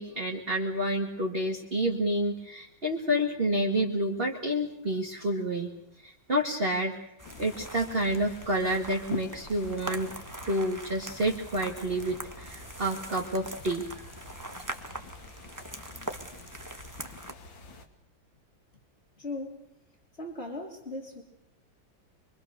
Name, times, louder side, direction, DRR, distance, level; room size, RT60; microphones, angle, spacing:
voice 1, 0.0-5.7 6.0-7.0 7.4-10.1 10.5-14.1, equal, 30° right, 0 dB, 2.3 m, -29 dB
sound 1, 7.2-17.9, left 4 dB, 80° left, 3.0 m, -47 dB
sound 2, 7.2-17.3, right 1 dB, 10° right, 1.4 m, -42 dB
voice 2, 19.2-19.7 20.1-21.2, left 2 dB, 30° left, -3 dB, 3.6 m, -38 dB
26.0 x 24.0 x 6.8 m, 0.81 s
omnidirectional pair, 2.1 m